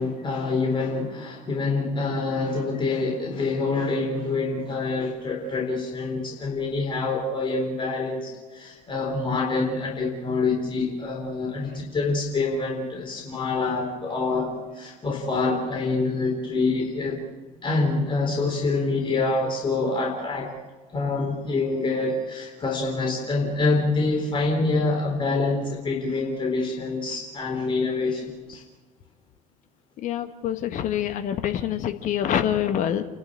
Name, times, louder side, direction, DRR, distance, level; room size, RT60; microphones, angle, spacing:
voice 1, 0.0-17.2 17.6-20.5 20.9-28.6, left 3 dB, 25° left, 0 dB, 3.9 m, -26 dB
voice 2, 30.0-33.0, left 10 dB, 45° left, 9 dB, 1.5 m, -26 dB
29.5 x 12.0 x 8.9 m, 1.3 s
figure-of-eight pair, 65°, 19 cm